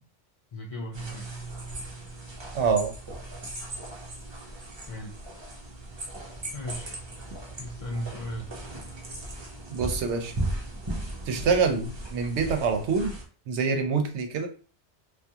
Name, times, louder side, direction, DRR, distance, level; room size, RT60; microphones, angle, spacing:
voice 1, 0.5-1.3 4.9-5.1 6.5-6.9 7.6-8.5, equal, 65° left, -3 dB, 0.3 m, -36 dB
sound 1, 0.9-13.2, right 1 dB, 40° right, 0.4 m, -37 dB
voice 2, 2.5-2.9 9.7-10.3 11.3-13.1 13.5-14.5, right 5 dB, 75° right, 4 dB, 0.8 m, -25 dB
2.3 x 2.3 x 2.7 m, 0.38 s
omnidirectional pair, 1.2 m